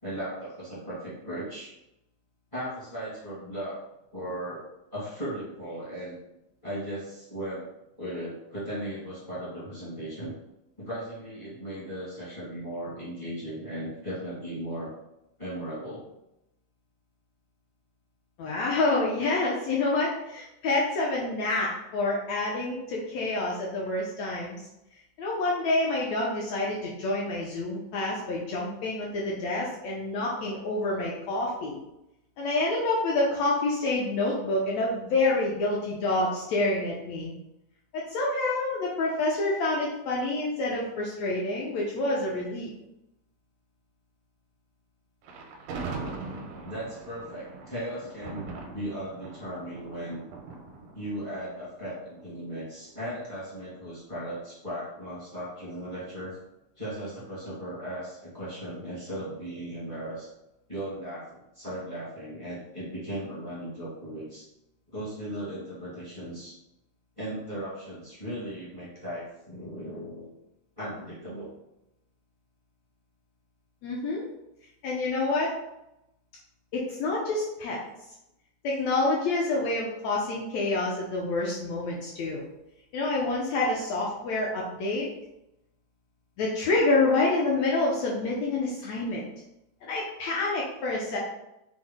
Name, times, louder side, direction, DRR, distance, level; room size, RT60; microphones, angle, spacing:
voice 1, 0.0-1.8 2.5-3.8 4.1-4.6 4.9-6.2 6.6-7.7 8.0-10.3 10.8-14.9 15.4-16.0 46.6-50.2 50.9-56.4 56.8-60.3 60.7-64.5 64.9-66.5 67.2-70.3 70.8-71.5, right 1 dB, 40° left, -10 dB, 0.6 m, -37 dB
voice 2, 18.4-24.6 25.2-31.8 32.4-37.3 37.9-42.7 73.8-74.2 74.8-75.5 76.7-77.8 78.6-82.4 82.9-85.1 86.4-89.2 89.8-91.2, left 2 dB, 80° left, -3 dB, 1.5 m, -27 dB
Thunder, 45.2-52.4, right 4 dB, 85° right, 2.3 m, -41 dB
6.1 x 2.0 x 3.6 m, 0.88 s
omnidirectional pair, 3.8 m